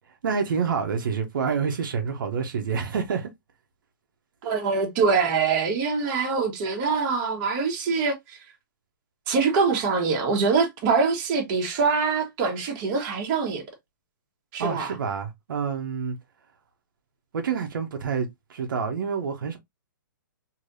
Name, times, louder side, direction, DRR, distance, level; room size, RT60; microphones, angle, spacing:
voice 1, 0.2-3.3 14.6-16.2 17.3-19.6, right 6 dB, 70° right, 0.9 m, -28 dB
voice 2, 4.4-8.4 9.3-13.6 14.5-14.9, right 5 dB, 30° right, 1.2 m, -24 dB
3.2 x 2.8 x 2.6 m
hypercardioid pair, 155°, 11 cm